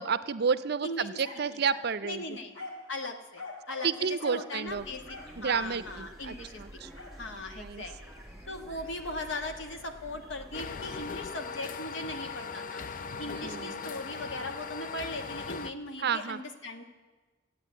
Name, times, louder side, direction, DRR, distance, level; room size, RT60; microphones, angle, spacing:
voice 1, 0.0-2.2 3.8-4.8 5.4-6.9 7.6-7.8 13.4-13.8 16.0-16.4, right 6 dB, 50° right, 14 dB, 0.5 m, -31 dB
sound 1, 1.2-1.9 2.5-2.9 3.4-3.9 4.2-4.4 5.0-5.8 7.0-7.2, left 2 dB, 85° left, 3.3 m, -44 dB
voice 2, 2.0-2.6 2.9-6.6 7.1-8.1 8.5-12.8 13.2-16.8, left 2 dB, 65° left, 5 dB, 1.4 m, -39 dB
sound 2, 4.7-11.3, right 1 dB, ahead, 2.2 m, -49 dB
sound 3, 10.5-15.7, left 5 dB, 40° left, 0.5 m, -39 dB
14.5 x 9.0 x 9.2 m, 1.3 s
head